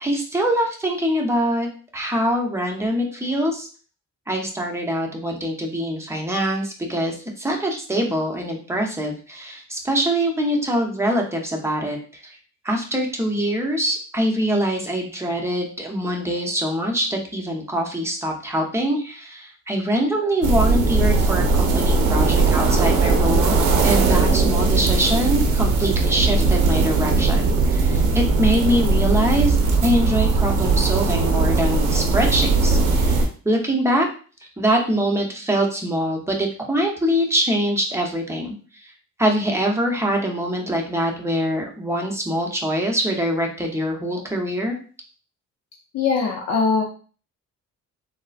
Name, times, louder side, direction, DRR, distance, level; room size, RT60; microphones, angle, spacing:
voice 1, 0.0-3.7 4.3-12.4 12.6-23.6 23.8-29.6 29.8-34.1 34.6-38.6 38.8-38.9 39.2-44.7, equal, 10° right, 1 dB, 0.8 m, -24 dB
sound 1, 20.4-33.3, right 3 dB, 85° right, 0.7 m, -19 dB
voice 2, 45.9-46.8, left 5 dB, 60° left, 0 dB, 0.6 m, -21 dB
3.7 x 2.1 x 2.5 m, 0.38 s
cardioid pair, 90°, 30 cm